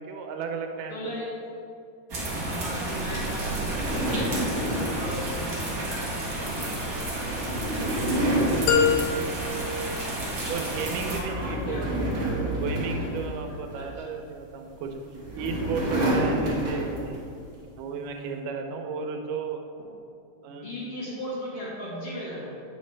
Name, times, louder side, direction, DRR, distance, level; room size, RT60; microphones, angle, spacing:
voice 1, 0.0-1.2 7.7-8.3 10.5-12.2 12.6-15.0 15.4-17.2 17.6-19.7 20.4-20.8, right 5 dB, 85° right, 4 dB, 2.2 m, -34 dB
voice 2, 0.9-1.4 2.4-7.0 9.8-10.8 11.0-12.0 13.5-14.1 16.1-16.8 20.6-22.5, equal, 50° left, -7 dB, 2.2 m, -38 dB
sound 1, 2.1-11.2, right 1 dB, 60° right, 0.9 m, -32 dB
sound 2, 3.4-10.0 10.3-10.6 11.0-14.0 14.8-17.3, right 1 dB, 35° right, 1.5 m, -30 dB
sound 3, 8.7-10.7, left 6 dB, 80° left, 2.1 m, -26 dB
8.3 x 6.2 x 3.2 m, 2.4 s
omnidirectional pair, 3.7 m